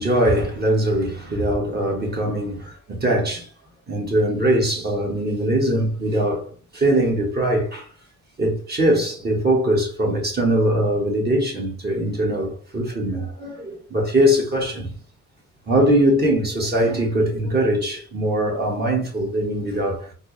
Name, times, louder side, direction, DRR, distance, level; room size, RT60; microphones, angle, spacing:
voice 1, 0.0-3.5 3.9-7.9 8.4-14.9 15.7-20.1, right 1 dB, 35° right, 1.2 m, -21 dB
4.4 x 2.0 x 3.0 m
cardioid pair, 90°, 30 cm